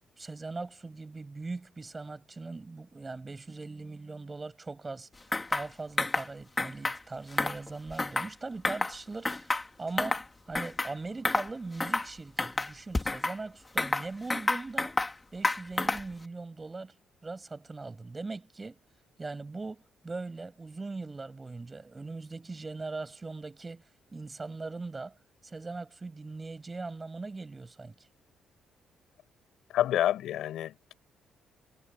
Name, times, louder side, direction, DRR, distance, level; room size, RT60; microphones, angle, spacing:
voice 1, 0.2-5.1 5.5-15.0 15.3-17.0 17.2-18.8 19.2-23.9 24.1-25.2 25.4-28.1, right 3 dB, 25° right, 7.9 m, -40 dB
sound 1, 5.3-5.7 6.0-6.3 6.6-7.0 7.3-8.3 8.6-9.0 9.3-10.3 10.5-10.9 11.2-11.5 11.8-12.1 12.4-13.4 13.8-15.1 15.4-16.1, left 2 dB, 20° left, 2.6 m, -29 dB
voice 2, 29.7-30.9, left 12 dB, 80° left, 6.2 m, -28 dB
cardioid pair, 90°, 0 cm